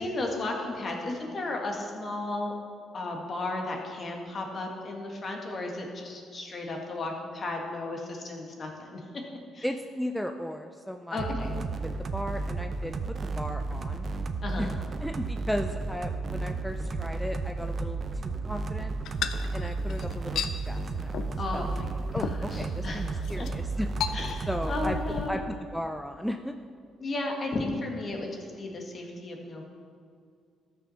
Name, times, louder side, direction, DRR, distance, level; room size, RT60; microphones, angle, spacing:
voice 1, 0.0-2.6 2.9-9.0 9.5-9.7 11.1-11.5 14.4-14.7 21.3-21.9 22.2-23.5 24.1-25.4 27.0-29.6, left 2 dB, 40° left, 1 dB, 1.9 m, -34 dB
voice 2, 9.6-14.1 14.6-14.7 15.0-18.9 19.5-21.7 22.1-23.9 24.5-25.0 25.3-26.5, equal, ahead, 5 dB, 0.5 m, -36 dB
sound 1, 11.2-25.3, right 3 dB, 45° right, 0.7 m, -33 dB
sound 2, 19.1-20.6 21.1-21.4 21.7-21.8 22.2-22.7 23.2-23.5 24.0-24.7 24.9-25.3, left 8 dB, 70° left, 0.6 m, -34 dB
13.0 x 6.1 x 5.7 m, 2.2 s
cardioid pair, 95°, 0 cm